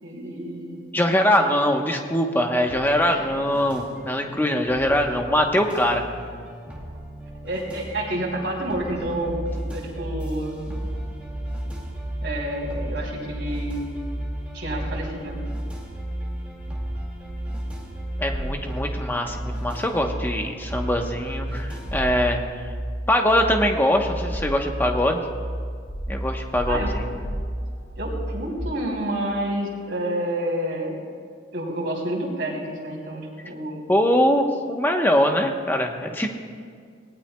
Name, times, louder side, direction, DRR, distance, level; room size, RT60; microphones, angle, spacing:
voice 1, 0.0-0.8 3.1-3.3 7.4-10.8 12.2-13.8 14.5-15.4 26.6-26.9 28.0-31.0 31.5-33.8, right 1 dB, 70° right, -2 dB, 3.1 m, -29 dB
voice 2, 0.9-6.0 18.2-22.4 23.1-25.2 26.1-27.1 33.9-36.3, left 1 dB, 10° left, 3 dB, 1.0 m, -22 dB
sound 1, 2.5-22.3, equal, 5° right, 2.0 m, -41 dB
sound 2, 9.0-28.6, right 1 dB, 60° left, 2.2 m, -33 dB
sound 3, 18.3-19.2 21.9-22.7 23.6-25.0 25.9-28.1, equal, 35° left, 2.9 m, -34 dB
19.0 x 18.0 x 2.3 m, 2.1 s
head